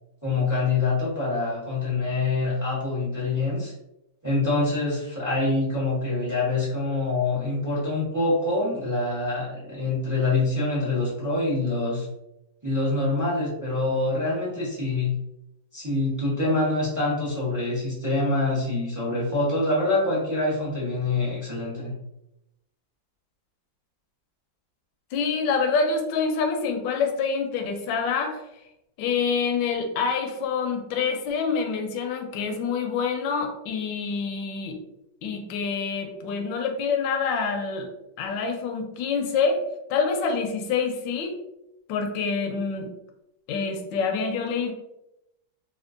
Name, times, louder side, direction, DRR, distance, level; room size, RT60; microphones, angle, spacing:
voice 1, 0.2-3.7 4.2-12.1 12.6-15.1 15.7-21.9, left 2 dB, 15° right, -7 dB, 0.6 m, -25 dB
voice 2, 25.1-28.4 29.0-34.7 35.2-37.9 38.2-39.6 39.9-41.4 41.9-42.9 43.5-44.7, left 5 dB, 75° left, 4 dB, 1.2 m, -26 dB
4.3 x 2.4 x 2.5 m, 0.87 s
omnidirectional pair, 2.1 m